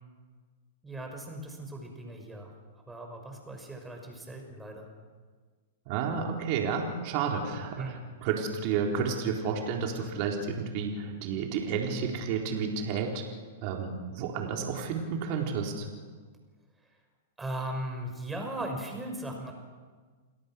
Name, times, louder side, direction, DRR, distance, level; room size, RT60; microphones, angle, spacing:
voice 1, 0.8-2.5 2.9-4.9 7.8-8.0 17.4-19.5, right 1 dB, 10° right, 3 dB, 6.0 m, -38 dB
voice 2, 5.9-13.2 13.6-15.9, right 6 dB, 50° right, 1 dB, 4.0 m, -31 dB
29.5 x 17.5 x 6.4 m, 1.5 s
hypercardioid pair, 120°, 0 cm